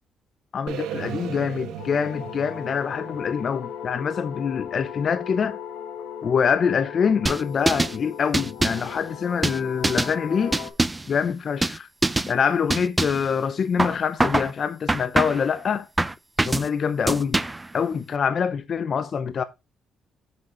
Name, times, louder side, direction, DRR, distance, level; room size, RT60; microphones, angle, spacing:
voice 1, 0.5-5.6 6.2-10.6 11.1-11.9 12.3-15.9 16.4-17.4 17.7-19.4, left 6 dB, 50° left, 0.7 m, -25 dB
sound 1, 0.7-4.7, right 9 dB, 90° right, 1.1 m, -37 dB
sound 2, 1.8-10.7, left 8 dB, 85° left, 2.0 m, -37 dB
sound 3, 7.3-8.0 8.3-8.9 9.4-10.1 10.5-11.1 11.6-11.8 12.0-12.3 12.7-13.3 13.8-14.5 14.9-15.5 16.0-16.7 17.1-17.7, right 2 dB, 15° right, 0.5 m, -24 dB
7.5 x 6.3 x 3.1 m
cardioid pair, 90°, 0 cm